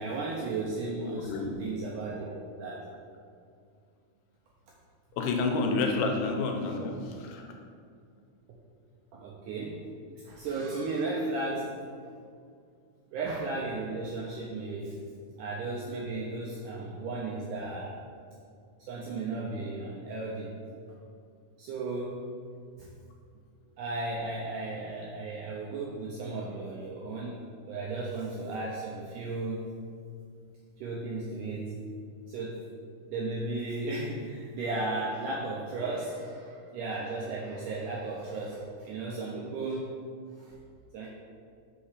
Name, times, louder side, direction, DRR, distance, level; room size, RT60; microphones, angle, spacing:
voice 1, 0.0-2.9 9.1-9.8 10.2-11.9 13.1-15.0 15.4-17.9 18.8-20.6 21.6-22.2 22.8-22.9 23.8-29.7 30.8-31.8 32.3-32.6 33.1-39.9 40.4-40.6 40.9-41.1, right 2 dB, 90° right, -4 dB, 1.8 m, -35 dB
voice 2, 5.2-7.4, left 3 dB, 90° left, 3 dB, 2.7 m, -29 dB
5.6 x 4.4 x 4.8 m, 2.3 s
omnidirectional pair, 4.3 m